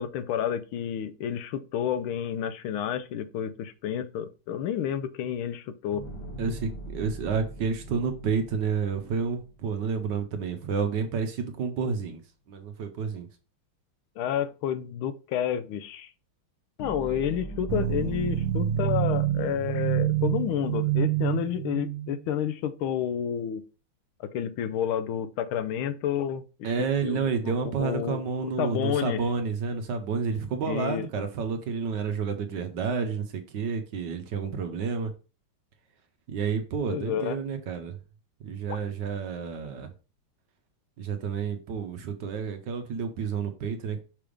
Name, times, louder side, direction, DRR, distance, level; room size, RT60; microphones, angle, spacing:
voice 1, 0.0-6.1 14.2-16.1 16.8-23.6 24.2-26.7 27.0-29.2 30.7-31.3 36.9-37.4, left 9 dB, 80° left, 1.4 m, -30 dB
sound 1, 5.9-10.2 16.8-20.6, right 2 dB, 55° left, 1.7 m, -42 dB
voice 2, 6.4-12.2 12.5-13.3 26.6-35.1 36.3-38.0 38.4-39.9 41.0-44.0, right 5 dB, 65° right, 1.3 m, -30 dB
sound 2, 17.7-22.3, right 12 dB, 80° right, 1.6 m, -27 dB
5.8 x 3.4 x 5.0 m
omnidirectional pair, 2.3 m